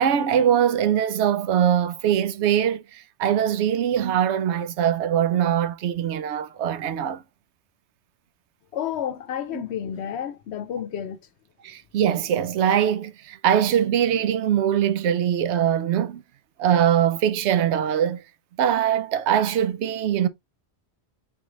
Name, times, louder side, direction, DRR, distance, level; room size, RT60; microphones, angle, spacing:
voice 1, 0.0-7.2 9.5-9.6 11.6-16.2 16.6-18.2 18.6-20.3, right 9 dB, 90° right, 0.9 m, -22 dB
voice 2, 8.7-11.2, left 9 dB, 75° left, 0.9 m, -30 dB
3.9 x 3.0 x 3.8 m
omnidirectional pair, 1.1 m